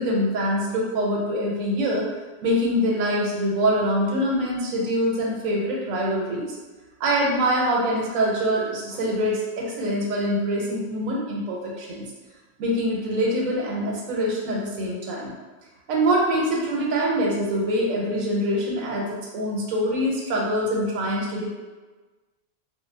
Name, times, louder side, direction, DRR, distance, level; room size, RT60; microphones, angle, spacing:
voice 1, 0.0-2.1 2.4-6.6 7.0-12.0 12.6-15.3 15.9-21.5, equal, 90° right, -2 dB, 1.0 m, -24 dB
2.2 x 2.0 x 3.1 m, 1.3 s
omnidirectional pair, 1.3 m